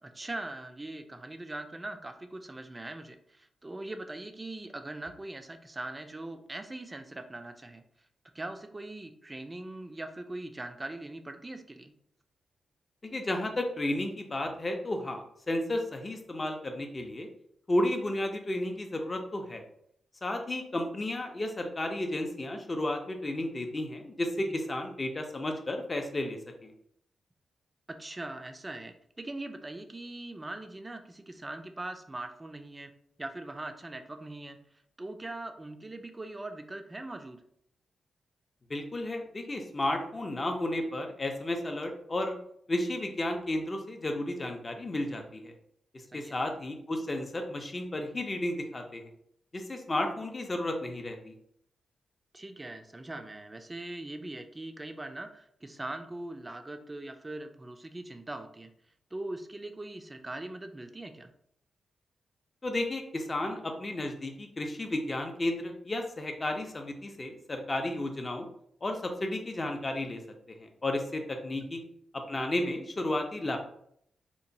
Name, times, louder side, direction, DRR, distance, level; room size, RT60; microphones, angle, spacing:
voice 1, 0.0-7.8 8.3-11.9 24.5-24.6 27.9-32.9 33.2-34.6 35.0-37.4 46.1-46.3 52.3-58.7 59.1-61.3 71.5-71.6, right 2 dB, 25° right, 7 dB, 0.4 m, -41 dB
voice 2, 13.1-17.3 17.7-19.6 20.2-26.7 38.7-42.4 42.7-45.5 46.1-49.0 49.5-51.3 62.6-68.5 68.8-70.2 70.6-71.8 72.3-73.6, left 1 dB, 35° left, 4 dB, 0.5 m, -33 dB
2.9 x 2.1 x 2.6 m, 0.70 s
cardioid pair, 60°, 0 cm